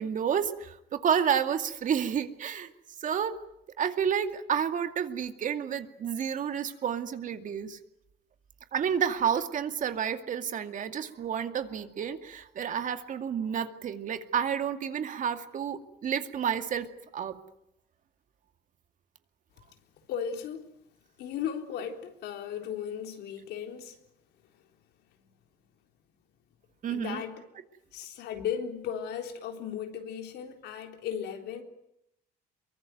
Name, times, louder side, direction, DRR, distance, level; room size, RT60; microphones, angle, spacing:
voice 1, 0.0-2.7 3.0-3.4 3.8-7.8 8.7-16.9 17.1-17.3 26.8-27.2, right 8 dB, 50° right, 2.3 m, -30 dB
voice 2, 20.1-20.7 21.2-24.0 26.9-27.4 27.9-31.6, left 8 dB, 80° left, 3.9 m, -36 dB
23.5 x 23.0 x 9.4 m
cardioid pair, 110°, 17 cm